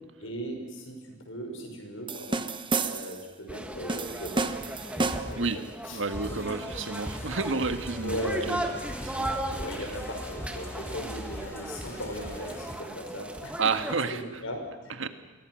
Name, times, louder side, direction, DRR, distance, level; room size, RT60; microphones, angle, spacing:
voice 1, 0.2-1.0 1.3-2.4 2.8-4.5 4.9-5.4 5.8-6.0 6.3-6.4 8.0-8.5 9.5-13.6 14.1-15.1, equal, 85° left, 3 dB, 5.9 m, -37 dB
sound 1, 2.1-3.3 3.9-5.5, right 3 dB, 25° right, 1.0 m, -30 dB
sound 2, 3.5-14.0, right 1 dB, 5° right, 1.7 m, -37 dB
voice 2, 5.9-8.2 8.5-8.7 9.0-9.9 13.6-14.2 15.0-15.1, right 4 dB, 75° right, 8 dB, 1.6 m, -31 dB
sound 3, 6.1-12.8, left 1 dB, 15° left, 3.1 m, -42 dB
29.0 x 23.0 x 6.3 m, 1.2 s
head